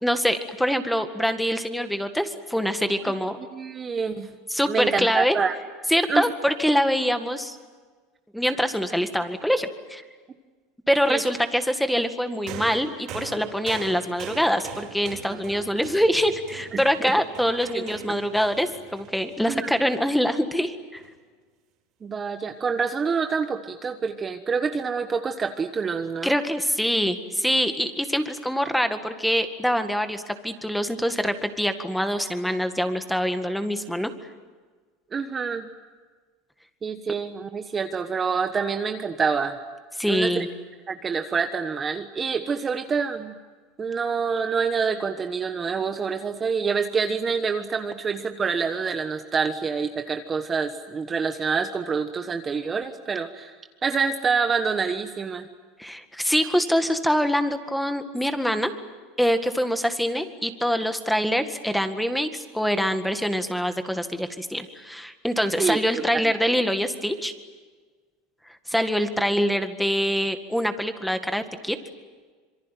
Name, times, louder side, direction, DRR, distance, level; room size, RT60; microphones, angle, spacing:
voice 1, 0.0-3.4 4.5-5.4 5.9-7.6 8.3-10.0 10.9-21.0 26.2-34.1 40.0-40.5 55.8-58.7 59.2-67.3 68.7-71.8, equal, ahead, 8 dB, 1.9 m, -24 dB
voice 2, 3.5-4.3 4.7-5.6 6.1-6.2 11.1-11.2 15.3-15.6 16.7-17.1 17.7-18.2 19.5-19.7 22.0-26.4 35.1-35.7 36.8-39.6 40.1-40.5 40.9-43.3 43.8-53.6 53.8-55.5 65.6-66.3, right 5 dB, 25° right, 7 dB, 1.3 m, -27 dB
sound 1, 12.5-20.0 21.0-21.1, right 7 dB, 50° right, 5.3 m, -41 dB
26.5 x 23.5 x 9.2 m, 1.4 s
supercardioid pair, 130°, 0 cm